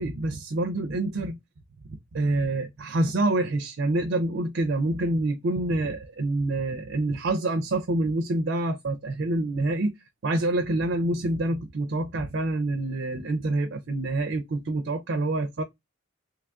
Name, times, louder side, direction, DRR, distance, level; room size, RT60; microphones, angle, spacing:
voice 1, 0.0-1.4 2.1-9.9 10.2-15.6, right 2 dB, 60° right, 0.4 m, -27 dB
3.1 x 2.4 x 3.4 m
head